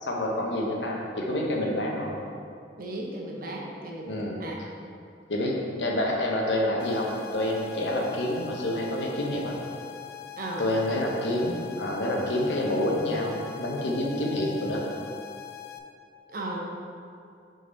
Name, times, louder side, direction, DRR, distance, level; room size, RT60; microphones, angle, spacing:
voice 1, 0.0-2.2 4.1-4.4 5.3-9.5 10.6-14.8, left 1 dB, 85° left, -1 dB, 1.0 m, -28 dB
voice 2, 2.8-4.6 10.4-10.6 16.3-16.7, right 1 dB, 55° right, -1 dB, 0.9 m, -35 dB
sound 1, 6.8-15.8, left 12 dB, 65° left, 0.5 m, -43 dB
6.5 x 4.0 x 4.0 m, 2.4 s
head